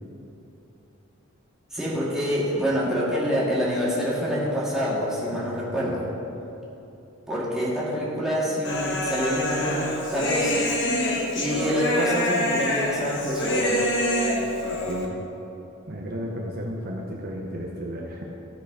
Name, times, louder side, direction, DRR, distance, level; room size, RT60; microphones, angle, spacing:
voice 1, 1.7-6.1 7.3-10.7 11.4-13.9, equal, ahead, -8 dB, 1.8 m, -26 dB
voice 2, 5.3-6.1 14.7-15.2 15.9-18.2, equal, 45° right, -1 dB, 0.8 m, -34 dB
Human voice, 8.6-15.1, left 1 dB, 60° left, 1.2 m, -26 dB
13.5 x 4.7 x 4.8 m, 2.9 s
head